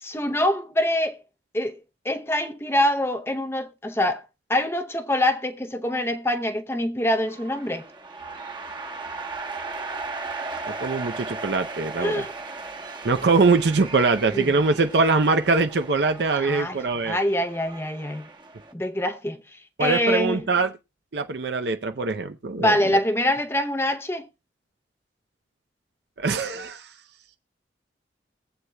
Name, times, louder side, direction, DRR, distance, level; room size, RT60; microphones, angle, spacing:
voice 1, 0.0-1.2 1.5-1.8 2.0-4.2 4.5-7.9 12.0-12.3 14.3-14.5 16.3-16.8 17.0-18.3 18.7-19.4 19.8-20.4 22.6-24.3, left 1 dB, 15° left, 0.7 m, -24 dB
sound 1, 7.2-18.7, right 3 dB, 25° right, 1.1 m, -37 dB
voice 2, 10.8-12.3 13.0-17.2 19.8-20.7 21.1-23.0 26.2-26.9, right 3 dB, 70° right, 0.6 m, -22 dB
22.0 x 8.0 x 2.3 m
head